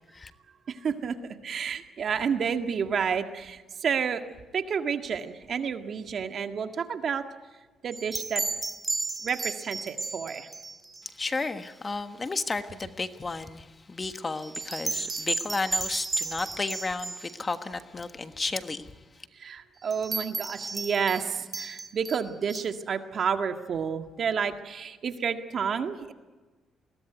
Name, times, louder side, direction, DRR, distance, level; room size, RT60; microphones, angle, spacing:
voice 1, 0.7-4.2 4.5-7.2 7.8-8.4 9.2-10.5 19.3-26.1, right 6 dB, 55° right, 6 dB, 1.8 m, -30 dB
sound 1, 7.9-11.0 11.4-11.5 14.4-17.3 19.9-21.2 21.5-22.6, right 3 dB, 20° right, 3.0 m, -33 dB
voice 2, 11.2-18.9, left 3 dB, 30° left, 9 dB, 1.4 m, -33 dB
21.5 x 18.0 x 9.4 m, 1.3 s
cardioid pair, 90°, 0 cm